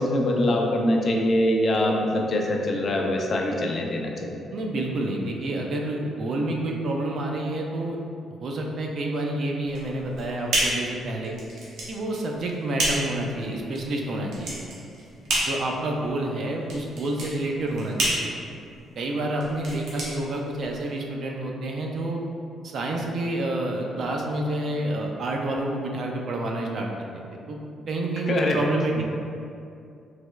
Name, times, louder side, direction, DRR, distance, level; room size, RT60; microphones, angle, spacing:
voice 1, 0.0-4.4 28.3-28.6, left 1 dB, 50° left, 0 dB, 0.4 m, -23 dB
voice 2, 4.5-8.0 8.4-11.4 11.9-14.5 15.4-18.3 19.0-22.2 22.6-26.9 27.5-27.6 27.9-29.0, right 1 dB, 60° right, 1 dB, 0.4 m, -28 dB
sound 1, 9.7-21.0, right 1 dB, 80° right, 0.8 m, -30 dB
3.2 x 2.9 x 2.2 m, 2.5 s
cardioid pair, 90°, 0 cm